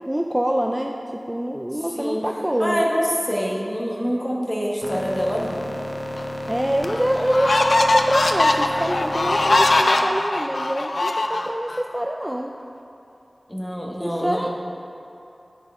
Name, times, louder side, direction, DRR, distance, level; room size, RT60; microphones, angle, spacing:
voice 1, 0.0-2.9 6.5-12.5 14.0-14.5, equal, 15° right, 2 dB, 0.4 m, -25 dB
voice 2, 2.6-5.6 13.5-14.5, equal, 15° left, -3 dB, 1.3 m, -25 dB
sound 1, 4.8-9.8, left 1 dB, 45° left, 0.7 m, -31 dB
sound 2, 6.2-6.3 6.8-11.8, left 2 dB, 90° left, 0.4 m, -21 dB
11.5 x 5.5 x 3.6 m, 2.8 s
wide cardioid pair, 60°, 0 cm